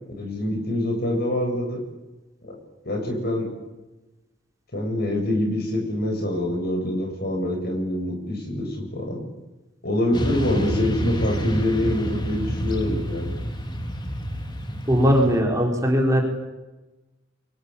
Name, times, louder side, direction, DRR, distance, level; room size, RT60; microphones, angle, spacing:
voice 1, 0.2-1.8 2.4-2.6 2.8-3.5 4.7-9.2 9.8-13.3, left 1 dB, 55° left, 2 dB, 7.9 m, -25 dB
Motorcycle / Traffic noise roadway noise, 10.1-15.4, equal, 25° left, 2.6 m, -28 dB
voice 2, 14.9-16.2, equal, 15° right, 0 dB, 4.4 m, -19 dB
28.5 x 24.0 x 7.2 m, 1.1 s
head